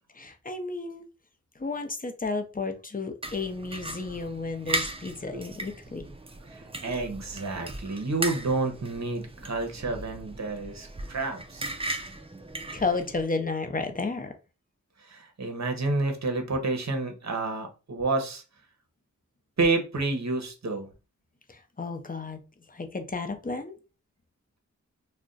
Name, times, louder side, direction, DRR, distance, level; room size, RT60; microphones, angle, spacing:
voice 1, 0.2-1.0 1.6-6.0 12.7-14.3 21.5-22.4 22.7-23.7, left 3 dB, 30° left, 0.6 m, -32 dB
sound 1, 3.2-13.3, right 2 dB, 20° right, 0.4 m, -37 dB
voice 2, 6.5-11.7 15.0-18.4 19.6-20.9, right 3 dB, 60° right, 0.8 m, -29 dB
2.4 x 2.2 x 3.7 m
wide cardioid pair, 55°, 31 cm